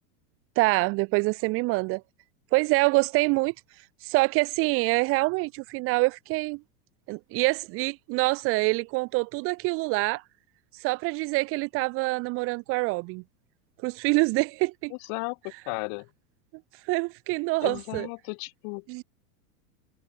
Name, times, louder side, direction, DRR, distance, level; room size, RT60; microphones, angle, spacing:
voice 1, 0.6-2.0 2.5-3.5 4.0-6.6 7.1-10.2 10.7-13.2 13.8-14.9 16.8-18.1 18.9-19.0, right 25 dB, 30° right, 0.5 m, -25 dB
voice 2, 14.9-16.1 17.6-18.8, left 40 dB or more, 45° left, 1.2 m, -35 dB
supercardioid pair, 150°, 46 cm